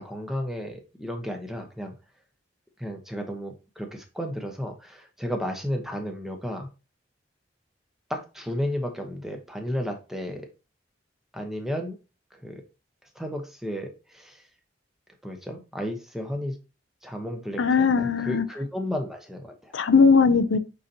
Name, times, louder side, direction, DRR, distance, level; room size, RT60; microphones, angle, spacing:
voice 1, 0.0-2.0 2.8-6.7 8.1-10.5 11.3-12.0 12.3-12.6 13.1-14.4 15.2-16.6 17.0-19.7, equal, ahead, 1.1 m, -33 dB
voice 2, 17.6-18.4 19.7-20.6, left 5 dB, 80° left, 0.6 m, -19 dB
8.4 x 4.1 x 2.9 m
head